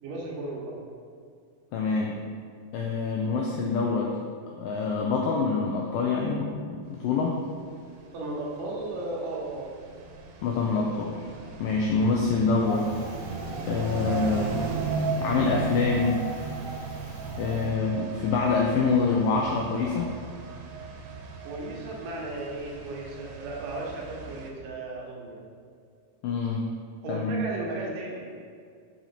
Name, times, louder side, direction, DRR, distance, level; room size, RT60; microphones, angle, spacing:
voice 1, 0.0-0.8 8.1-9.7 21.4-25.5 27.0-28.2, right 2 dB, 65° right, -3 dB, 2.5 m, -35 dB
voice 2, 1.7-2.2 2.7-4.1 4.6-7.4 10.4-11.1 11.6-12.9 13.7-14.6 15.2-16.2 17.4-20.1 26.2-26.7 27.1-27.5, left 4 dB, 85° left, -1 dB, 1.9 m, -26 dB
sound 1, 7.9-24.5, right 4 dB, 90° right, 2.8 m, -36 dB
Wind, 12.6-17.7, right 1 dB, 60° left, 1.5 m, -42 dB
6.3 x 6.0 x 4.3 m, 2.2 s
omnidirectional pair, 4.7 m